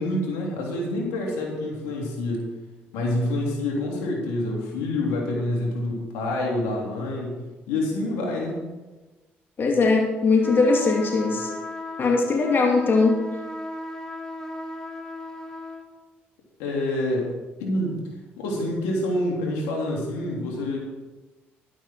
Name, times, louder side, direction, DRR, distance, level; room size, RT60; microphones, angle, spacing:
voice 1, 0.0-2.4 2.9-8.6 16.6-18.0 18.4-20.8, left 1 dB, 90° left, -1 dB, 3.4 m, -27 dB
voice 2, 9.6-11.5 12.0-13.2, left 3 dB, 45° left, 1 dB, 2.2 m, -20 dB
sound 1, 10.4-15.9, left 1 dB, 15° left, 2.4 m, -36 dB
12.0 x 11.0 x 4.7 m, 1.2 s
supercardioid pair, 70°, 5 cm